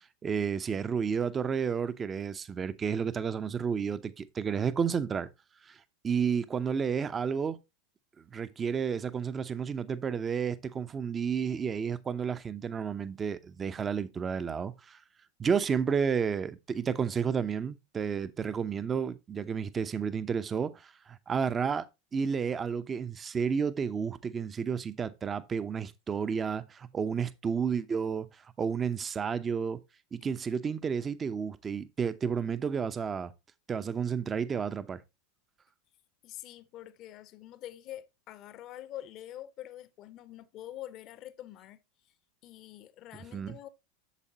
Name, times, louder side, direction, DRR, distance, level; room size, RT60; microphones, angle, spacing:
voice 1, 0.2-5.3 5.7-5.8 6.0-7.6 8.3-15.0 15.4-28.3 28.6-29.8 30.1-33.3 33.7-35.0 43.3-43.5, right 6 dB, 25° right, 0.7 m, -31 dB
voice 2, 36.2-41.8 42.4-43.7, left 13 dB, 40° left, 0.8 m, -45 dB
8.3 x 7.2 x 2.8 m
figure-of-eight pair, 85°, 0 cm